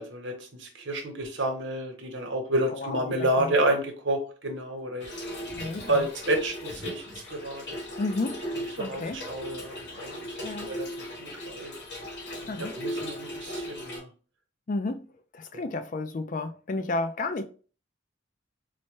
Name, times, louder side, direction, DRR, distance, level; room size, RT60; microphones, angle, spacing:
voice 1, 0.0-5.1 5.9-7.0 7.3-7.6 8.8-10.2 10.5-10.9 11.2-11.7 12.4-14.1 15.5-15.6, right 1 dB, 75° right, 0.9 m, -30 dB
voice 2, 2.7-3.5 5.5-6.1 8.0-8.4 8.8-9.2 10.4-10.7 12.5-12.8 14.7-15.0 15.3-17.4, left 2 dB, 45° left, 0.4 m, -32 dB
Trickle dribble / Fill (with liquid), 5.0-14.0, equal, 60° left, 1.0 m, -37 dB
4.0 x 2.1 x 3.1 m
head